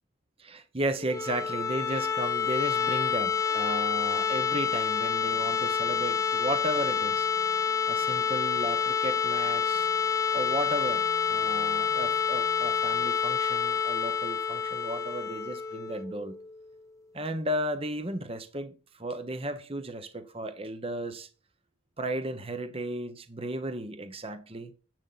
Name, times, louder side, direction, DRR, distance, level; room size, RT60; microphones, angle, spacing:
voice 1, 0.4-7.3 7.9-9.9 10.3-16.3 17.1-21.3 22.0-24.7, right 1 dB, 30° right, 1.0 m, -34 dB
sound 1, 1.0-16.8, left 7 dB, 15° left, 0.6 m, -28 dB
sound 2, 2.8-13.1, left 2 dB, 70° left, 1.9 m, -53 dB
10.5 x 8.2 x 4.1 m
head